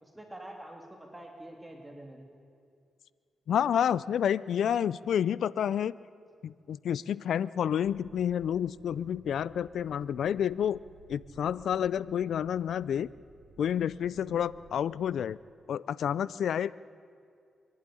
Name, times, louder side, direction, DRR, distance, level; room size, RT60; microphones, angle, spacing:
voice 1, 0.0-2.3 14.2-14.4, right 1 dB, 10° right, 1 dB, 2.9 m, -46 dB
voice 2, 3.5-5.9 6.4-10.8 11.1-13.1 13.6-15.4 15.7-16.7, left 9 dB, 80° left, 20 dB, 0.4 m, -29 dB
sound 1, 7.8-14.7, right 4 dB, 80° right, 2.2 m, -58 dB
24.0 x 11.5 x 9.9 m, 2.3 s
cardioid pair, 70°, 0 cm